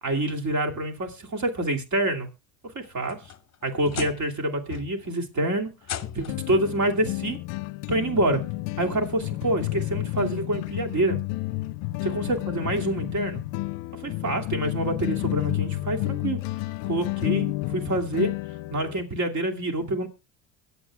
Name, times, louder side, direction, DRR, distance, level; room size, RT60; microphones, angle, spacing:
voice 1, 0.0-2.3 2.6-3.2 3.6-5.7 6.1-7.4 7.9-8.4 8.8-11.2 12.0-13.4 13.9-16.4 16.8-18.3 18.7-20.1, right 1 dB, 40° right, 3 dB, 2.5 m, -27 dB
sound 1, 2.8-4.4 4.7-5.2 5.8-6.5 7.7-7.8 8.4-8.5 10.1-10.2, left 10 dB, 35° left, 0.9 m, -37 dB
sound 2, 5.4-5.5 6.3-19.0, left 19 dB, 70° left, 0.6 m, -31 dB
23.0 x 8.2 x 2.3 m, 0.26 s
supercardioid pair, 80°, 45 cm